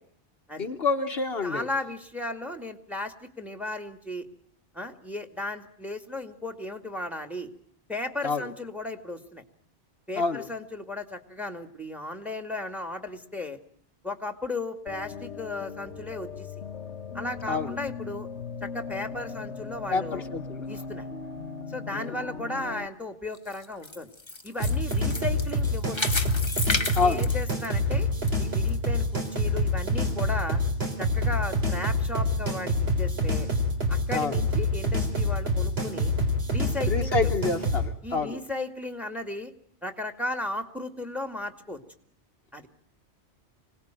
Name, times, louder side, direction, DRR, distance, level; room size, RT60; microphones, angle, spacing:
voice 1, 0.6-1.7 8.2-8.5 10.2-10.5 17.5-17.8 19.9-20.7 21.9-22.2 27.0-27.3 34.1-34.4 36.9-38.4, left 4 dB, 60° left, 5 dB, 1.6 m, -28 dB
voice 2, 1.4-4.3 4.7-7.5 7.9-9.4 10.1-13.6 14.0-16.5 17.1-18.3 18.6-20.2 20.7-21.1 21.7-24.1 24.4-26.0 27.0-28.1 28.4-30.6 31.0-33.5 33.9-36.2 36.5-37.3 38.0-39.5 39.8-41.8 42.5-42.7, left 2 dB, ahead, 8 dB, 2.1 m, -35 dB
sound 1, 14.9-22.9, left 5 dB, 85° left, 1.8 m, -38 dB
sound 2, 23.3-28.3 28.7-28.8 29.4-29.5, left 2 dB, 25° left, 1.3 m, -32 dB
sound 3, 24.6-37.8, left 1 dB, 60° right, 4.5 m, -26 dB
26.0 x 18.5 x 9.1 m, 0.63 s
omnidirectional pair, 1.2 m